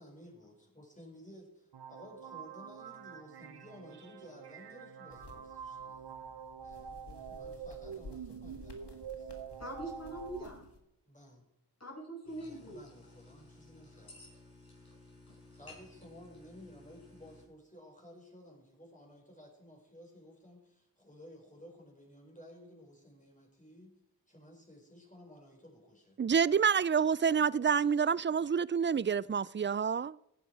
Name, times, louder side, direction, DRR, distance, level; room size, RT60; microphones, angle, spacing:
voice 1, 0.0-6.1 6.6-9.3 11.1-11.5 12.4-14.2 15.5-24.0 24.3-26.2, equal, 20° left, 4.9 m, -55 dB
sound 1, 1.7-10.4, right 7 dB, 75° right, 0.7 m, -46 dB
sound 2, 5.1-10.8, left 4 dB, 85° left, 1.7 m, -53 dB
voice 2, 9.6-10.7 11.8-12.8, right 1 dB, 40° left, 5.5 m, -43 dB
sound 3, 12.2-17.4, left 2 dB, 65° left, 5.5 m, -56 dB
voice 3, 26.2-30.2, right 6 dB, 30° right, 0.4 m, -28 dB
16.5 x 10.0 x 4.8 m
wide cardioid pair, 65°, 40 cm